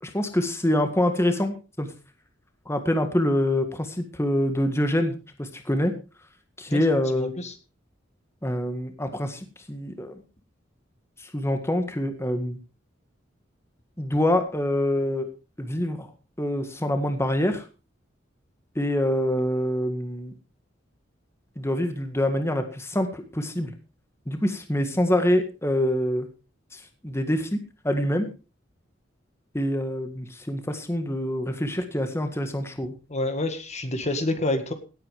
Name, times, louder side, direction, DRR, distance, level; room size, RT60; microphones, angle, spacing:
voice 1, 0.0-1.9 2.6-5.9 6.6-7.3 8.4-10.2 11.3-12.6 14.0-15.3 15.6-16.1 16.4-17.6 18.7-20.3 21.5-23.7 24.3-26.3 26.7-28.3 29.5-32.9, left 1 dB, 15° left, 7 dB, 1.8 m, -25 dB
voice 2, 7.1-7.5 33.1-34.7, left 2 dB, 35° left, 8 dB, 1.8 m, -28 dB
17.5 x 8.9 x 5.0 m, 0.33 s
head